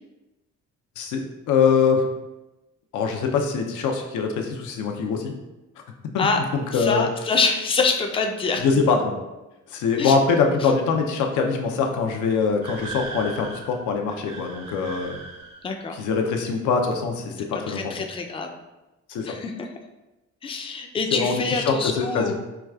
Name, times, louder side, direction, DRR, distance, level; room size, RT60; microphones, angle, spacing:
voice 1, 1.0-2.0 2.9-5.3 6.1-6.3 6.5-7.1 8.6-9.1 9.7-15.2 15.9-17.9 19.1-19.4 21.1-22.3, left 5 dB, 80° left, 3 dB, 0.6 m, -23 dB
voice 2, 6.7-8.6 10.0-10.2 10.6-10.7 15.6-16.0 17.5-18.5 19.2-19.7 20.4-22.3, left 4 dB, 20° left, 4 dB, 0.4 m, -25 dB
sound 1, 12.6-15.8, right 3 dB, 85° right, 0.7 m, -38 dB
4.6 x 2.3 x 2.3 m, 1.0 s
cardioid pair, 90°, 30 cm